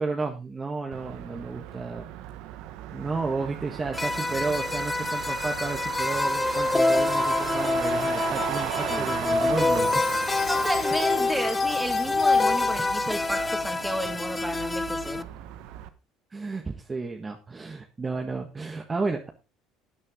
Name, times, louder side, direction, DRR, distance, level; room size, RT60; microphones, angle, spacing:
voice 1, 0.0-2.0 2.9-9.9 11.2-11.4 16.3-19.3, right 4 dB, 25° right, 3 dB, 1.7 m, -32 dB
Motor vehicle (road), 0.9-15.9, right 13 dB, 75° right, 1.2 m, -37 dB
sound 1, 3.9-15.2, left 3 dB, 15° left, 0.8 m, -26 dB
voice 2, 8.6-9.1 10.5-15.3, equal, ahead, 5 dB, 3.3 m, -32 dB
Chime, 9.7-13.7, left 11 dB, 60° left, 1.0 m, -42 dB
12.5 x 8.8 x 3.8 m, 0.28 s
supercardioid pair, 80°, 0 cm